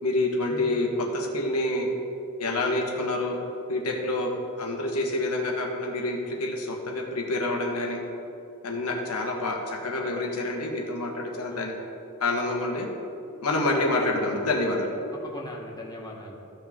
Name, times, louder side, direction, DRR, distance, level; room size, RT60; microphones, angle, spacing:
voice 1, 0.0-1.9 2.4-3.4 3.7-4.3 4.6-8.0 8.6-11.7 12.2-12.9 13.4-14.9, left 2 dB, 85° left, 0 dB, 1.4 m, -27 dB
voice 2, 13.6-14.1 15.1-16.4, left 1 dB, 20° left, -2 dB, 1.0 m, -41 dB
14.5 x 6.1 x 3.7 m, 2.7 s
head